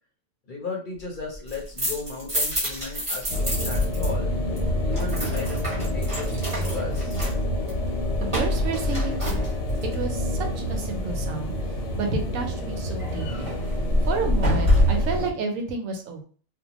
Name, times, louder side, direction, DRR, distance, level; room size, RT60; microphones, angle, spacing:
voice 1, 0.5-4.3 4.8-7.2, left 3 dB, 50° left, -1 dB, 0.7 m, -35 dB
sound 1, 1.3-4.1 4.3-9.9 13.0-15.2, equal, 25° right, 1.1 m, -27 dB
sound 2, 3.3-15.3, left 1 dB, 70° left, 0.9 m, -28 dB
voice 2, 8.2-9.5 9.9-11.5 12.0-13.5 14.1-16.2, right 4 dB, 85° right, 4 dB, 1.1 m, -31 dB
2.7 x 2.1 x 2.9 m, 0.43 s
omnidirectional pair, 1.3 m